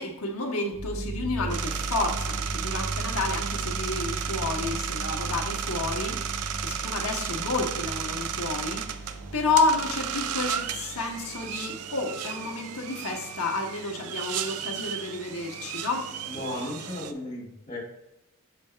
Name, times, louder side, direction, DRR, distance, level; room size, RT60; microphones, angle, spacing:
voice 1, 0.0-6.2 6.6-16.1, left 3 dB, 75° left, 2 dB, 1.1 m, -30 dB
sound 1, 0.7-11.5 12.1-12.4, right 2 dB, 5° right, 1.9 m, -36 dB
sound 2, 1.5-17.1, right 8 dB, 85° right, 0.5 m, -34 dB
voice 2, 16.3-17.8, left 1 dB, 35° left, -4 dB, 2.4 m, -35 dB
6.2 x 4.7 x 3.3 m, 0.80 s
head